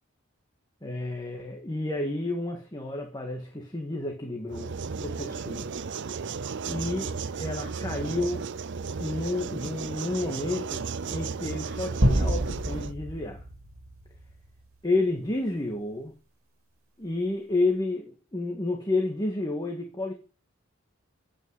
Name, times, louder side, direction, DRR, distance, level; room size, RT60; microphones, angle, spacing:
voice 1, 0.8-5.7 6.6-8.4 9.0-13.4 14.8-16.1 17.0-20.1, left 2 dB, 20° left, 1.8 m, -30 dB
sound 1, 4.5-12.9, right 5 dB, 60° right, 0.6 m, -34 dB
sound 2, 12.0-14.5, right 1 dB, 80° right, 2.6 m, -27 dB
9.4 x 8.9 x 8.1 m
head